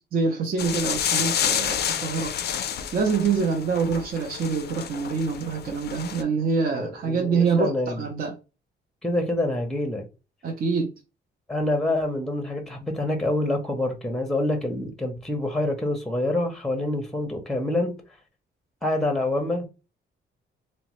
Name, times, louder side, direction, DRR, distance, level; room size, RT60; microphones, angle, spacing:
voice 1, 0.0-2.3 2.9-7.7 8.0-8.4 10.4-10.9, right 5 dB, 50° right, 0.6 m, -25 dB
sound 1, 0.6-6.2, left 9 dB, 55° left, 0.4 m, -29 dB
voice 2, 6.7-8.1 9.0-10.0 11.5-17.9 18.8-19.7, left 1 dB, ahead, 0.7 m, -26 dB
2.9 x 2.1 x 2.9 m
cardioid pair, 90°, 20 cm